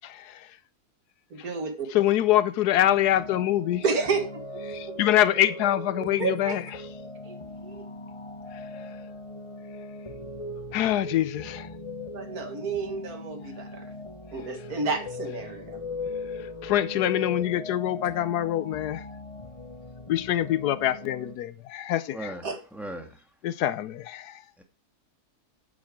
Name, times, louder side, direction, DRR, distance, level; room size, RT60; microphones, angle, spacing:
voice 1, 1.3-1.9 3.8-5.0 6.0-6.6 7.3-7.9 12.1-13.8 14.3-15.8 22.4-22.6, right 4 dB, 70° right, 2.0 m, -31 dB
voice 2, 1.9-3.8 4.7-6.6 10.7-11.7 16.6-19.0 20.1-22.2 23.4-24.3, left 12 dB, 85° left, 1.2 m, -24 dB
sound 1, 2.8-21.4, left 2 dB, 30° left, 0.7 m, -39 dB
voice 3, 22.1-23.3 24.6-24.7, right 1 dB, ahead, 1.8 m, -39 dB
8.7 x 8.2 x 4.7 m
omnidirectional pair, 1.7 m